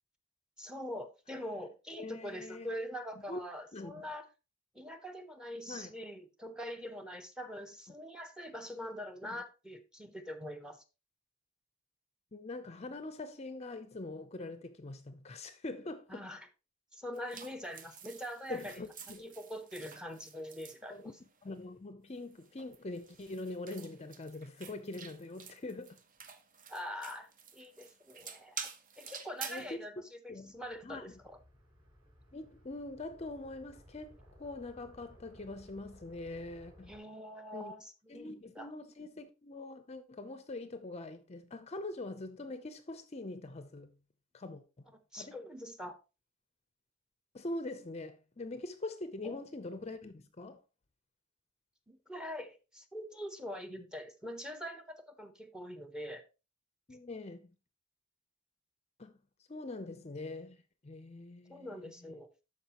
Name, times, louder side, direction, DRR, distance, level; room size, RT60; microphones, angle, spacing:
voice 1, 0.6-4.3 4.7-10.8 16.1-16.5 16.9-18.8 19.2-21.1 26.7-28.7 29.0-30.2 30.5-31.4 36.9-38.7 45.1-46.0 49.2-49.4 51.9-56.2 61.5-62.3, equal, 5° right, 0.8 m, -44 dB
voice 2, 1.9-2.7 3.2-3.4 3.7-4.0 5.7-5.9 12.3-16.3 18.5-19.2 20.9-21.1 21.4-26.0 29.5-29.7 30.3-30.5 30.8-31.2 32.3-36.9 37.5-37.7 38.1-43.9 44.3-44.8 45.1-45.4 47.3-50.6 56.9-57.5 59.0-59.2 59.5-60.6 60.8-62.1, left 2 dB, 30° left, 0.6 m, -43 dB
sound 1, 17.1-21.5 22.2-29.7, right 6 dB, 40° right, 0.8 m, -49 dB
sound 2, 30.4-37.0, equal, 25° right, 5.5 m, -59 dB
12.5 x 4.8 x 2.9 m
head